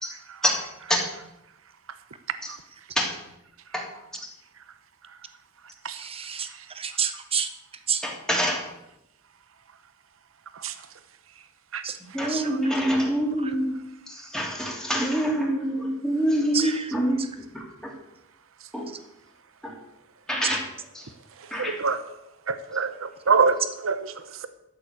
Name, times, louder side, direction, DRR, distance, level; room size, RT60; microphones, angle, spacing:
voice 1, 5.9-6.5 6.8-7.5 7.9-8.0 11.8-12.0 12.2-12.5 16.5-16.8, right 7 dB, 30° right, 9 dB, 1.1 m, -28 dB
voice 2, 8.0-8.7 12.1-13.7 14.1-17.9 18.7-18.9 19.6-19.7 20.3-20.7 20.9-21.1 21.5-21.8, equal, 5° left, -2 dB, 3.1 m, -26 dB
voice 3, 21.4-22.0 22.5-24.5, right 5 dB, 70° right, 10 dB, 0.8 m, -26 dB
13.0 x 7.2 x 8.2 m, 0.88 s
head